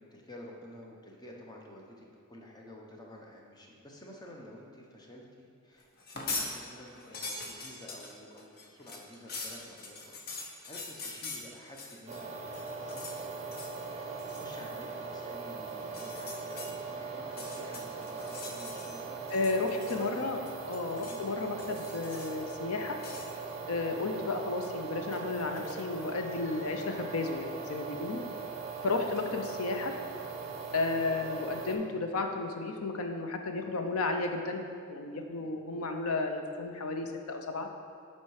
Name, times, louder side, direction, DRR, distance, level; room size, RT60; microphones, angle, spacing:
voice 1, 0.1-10.2 10.7-13.6 13.9-19.2 19.9-20.3 21.0-21.4 28.0-28.4 28.9-29.1, equal, 20° left, -1 dB, 0.9 m, -50 dB
sound 1, 6.0-6.5 6.9-12.2 12.5-13.2 13.5-13.8 14.2-14.5 15.8-16.7 17.2-19.0 19.3-20.2 20.5-21.2 21.6-22.5 23.0-23.3, left 3 dB, 45° left, 0.8 m, -42 dB
sound 2, 12.1-31.8, right 4 dB, 30° right, 0.8 m, -40 dB
voice 2, 19.3-20.4 20.7-23.0 23.7-28.2 28.8-29.9 30.7-37.7, left 3 dB, 85° left, 5 dB, 0.7 m, -33 dB
7.3 x 4.5 x 4.8 m, 2.2 s
head